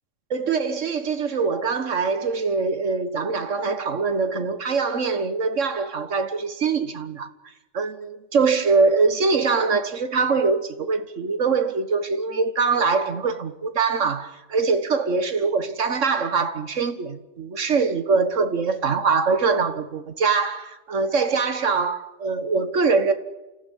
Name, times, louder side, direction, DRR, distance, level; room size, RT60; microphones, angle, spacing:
voice 1, 0.3-7.3 7.7-23.1, right 4 dB, 75° right, 1.9 m, -23 dB
28.5 x 15.0 x 9.2 m
omnidirectional pair, 1.3 m